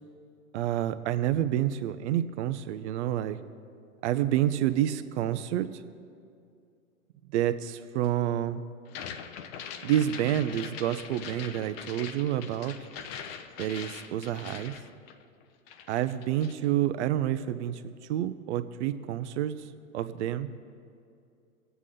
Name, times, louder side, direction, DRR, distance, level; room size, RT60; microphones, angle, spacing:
voice 1, 0.5-3.4 4.0-5.7 7.3-8.6 9.8-12.7 13.6-14.7 15.9-17.8 18.1-19.5 19.9-20.5, right 11 dB, 50° right, 12 dB, 0.8 m, -28 dB
sound 1, 8.9-15.4 15.7-16.7, left 7 dB, 45° left, 0.8 m, -42 dB
22.5 x 8.3 x 3.8 m, 2.4 s
figure-of-eight pair, 105°, 43 cm